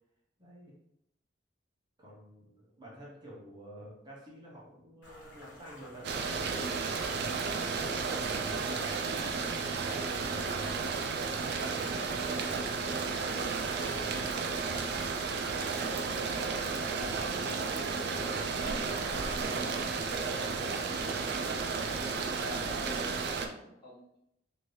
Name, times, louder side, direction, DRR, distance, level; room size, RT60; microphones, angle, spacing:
voice 1, 0.4-0.7 2.0-7.9, equal, 25° right, -6 dB, 0.9 m, -51 dB
sound 1, 5.0-22.2, left 1 dB, 70° left, 1.0 m, -54 dB
sound 2, 6.0-23.5, right 4 dB, 60° right, 0.4 m, -33 dB
voice 2, 16.9-20.4 22.1-24.2, left 2 dB, 25° left, -7 dB, 1.1 m, -48 dB
2.9 x 2.7 x 3.2 m, 0.79 s
head